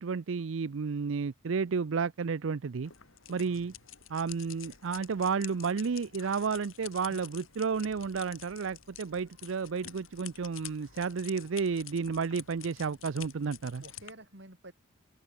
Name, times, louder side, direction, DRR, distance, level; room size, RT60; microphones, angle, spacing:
voice 1, 0.0-2.9 3.3-3.7 4.1-13.8, right 5 dB, 75° right, 0.5 m, -32 dB
sound 1, 2.8-14.1, left 11 dB, 80° left, 2.6 m, -49 dB
voice 2, 3.4-3.8 13.4-13.5 13.8-14.7, right 1 dB, 55° right, 5.5 m, -51 dB
head